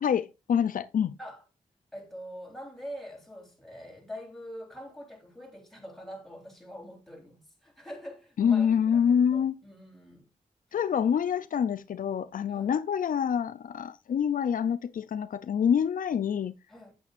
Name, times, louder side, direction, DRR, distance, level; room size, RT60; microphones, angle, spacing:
voice 1, 0.0-1.2 8.4-9.6 10.7-16.5, left 8 dB, 80° left, 0.5 m, -26 dB
voice 2, 1.9-10.3 12.5-12.7 16.7-16.9, equal, ahead, 3.8 m, -44 dB
8.4 x 8.4 x 2.5 m
cardioid pair, 75°, 14 cm